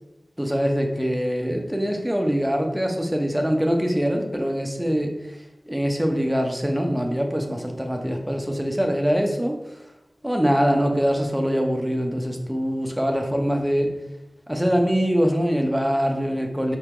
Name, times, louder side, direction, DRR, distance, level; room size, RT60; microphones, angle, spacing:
voice 1, 0.4-5.1 5.7-9.6 10.2-13.9 14.5-16.8, equal, 5° right, 2 dB, 0.7 m, -23 dB
4.2 x 2.9 x 3.6 m, 0.90 s
wide cardioid pair, 70°, 0 cm